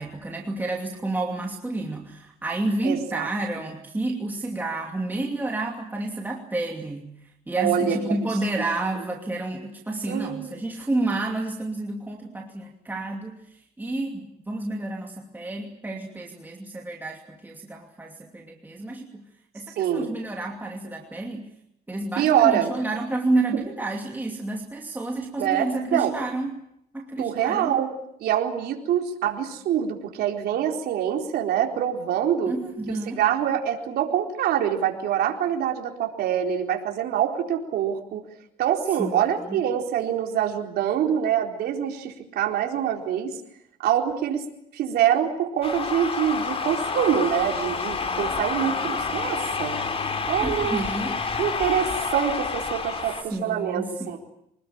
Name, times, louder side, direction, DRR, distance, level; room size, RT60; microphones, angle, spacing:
voice 1, 0.0-7.1 7.5-13.4 13.8-19.2 19.5-21.5 21.9-26.5 26.9-27.7 32.5-33.2 39.0-39.2 39.5-39.6 50.4-51.2 53.3-54.2, right 2 dB, 10° right, 1 dB, 2.8 m, -30 dB
voice 2, 2.8-3.3 7.6-8.2 10.1-10.6 19.7-20.1 22.2-22.7 23.5-23.6 25.4-26.1 27.2-27.9 28.2-32.6 32.9-38.2 38.6-43.4 43.8-44.5 44.7-49.8 50.3-50.8 51.4-54.2, right 9 dB, 70° right, 2 dB, 4.3 m, -25 dB
sound 1, 45.6-53.2, left 5 dB, 35° left, 3.6 m, -28 dB
25.5 x 20.0 x 8.8 m, 0.77 s
cardioid pair, 110°, 17 cm